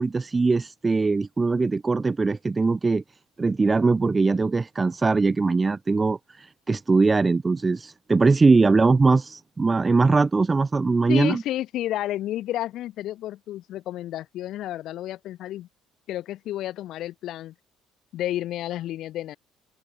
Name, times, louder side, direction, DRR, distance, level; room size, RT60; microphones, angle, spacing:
voice 1, 0.0-3.0 3.4-11.4, right 3 dB, 25° right, 1.5 m, -21 dB
voice 2, 11.1-15.7 16.1-17.5 18.1-19.4, left 13 dB, 70° left, 2.4 m, -31 dB
open air
supercardioid pair, 90°, 0 cm